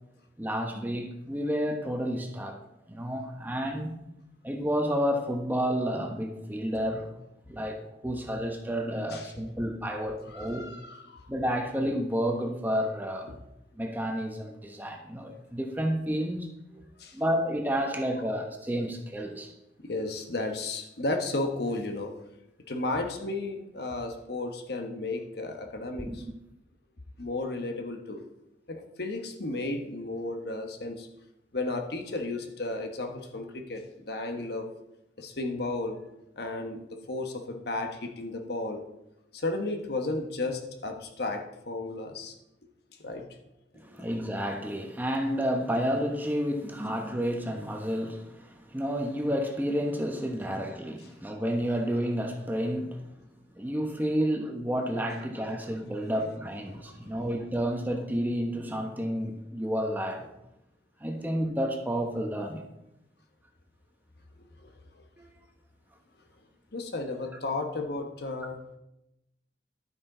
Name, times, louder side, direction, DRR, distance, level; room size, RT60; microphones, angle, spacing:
voice 1, 0.4-2.6 2.9-3.9 4.4-7.1 7.5-10.7 11.3-13.4 13.8-16.8 17.1-19.5 26.1-26.3 43.7-53.0 53.6-60.3 61.0-62.6 65.2-65.3, equal, 10° right, 1.0 m, -30 dB
voice 2, 10.3-11.3 17.0-17.2 19.8-22.2 22.7-26.2 27.2-28.3 28.7-31.1 31.5-34.7 35.2-36.0 36.4-38.8 39.3-42.4 43.0-43.3 43.9-44.1 56.8-57.2 64.6-65.0 66.7-68.6, left 2 dB, 60° left, 1.1 m, -34 dB
12.0 x 8.7 x 3.9 m
head